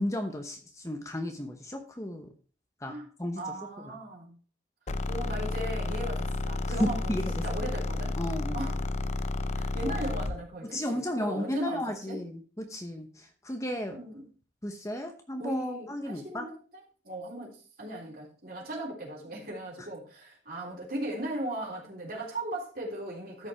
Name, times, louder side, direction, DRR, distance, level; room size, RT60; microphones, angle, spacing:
voice 1, 0.0-2.3 2.8-2.9 3.2-3.4 3.8-3.9 6.8-7.2 8.2-8.7 9.9-10.0 10.7-14.0 14.6-16.5, left 1 dB, 15° left, 5 dB, 1.0 m, -34 dB
voice 2, 3.4-4.4 5.1-7.2 7.4-8.2 8.5-8.9 9.5-12.2 13.9-14.2 15.4-16.6 17.0-23.5, right 1 dB, 50° right, -2 dB, 3.6 m, -37 dB
sound 1, 4.9-10.4, left 2 dB, 35° left, 0.5 m, -31 dB
13.0 x 5.3 x 4.4 m, 0.38 s
head